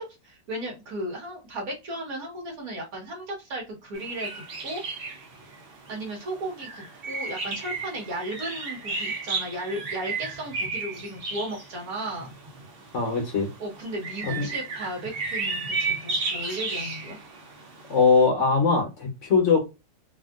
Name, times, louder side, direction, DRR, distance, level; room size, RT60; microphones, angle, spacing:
voice 1, 0.0-4.8 5.9-12.3 13.6-17.2, right 1 dB, 55° right, 1.7 m, -35 dB
sound 1, 3.9-18.3, right 4 dB, 85° right, 0.5 m, -34 dB
voice 2, 12.9-13.5 14.4-14.5 17.9-19.6, left 4 dB, 50° left, 1.1 m, -21 dB
3.6 x 2.4 x 2.3 m
omnidirectional pair, 1.9 m